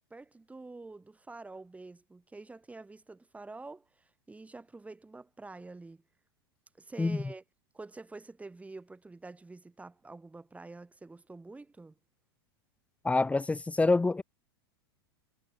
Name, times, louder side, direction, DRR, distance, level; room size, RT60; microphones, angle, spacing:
voice 1, 0.1-6.0 6.8-7.4 7.7-11.9, right 3 dB, 10° right, 8.0 m, -47 dB
voice 2, 13.0-14.2, left 3 dB, 10° left, 1.2 m, -26 dB
hypercardioid pair, 95°, 13 cm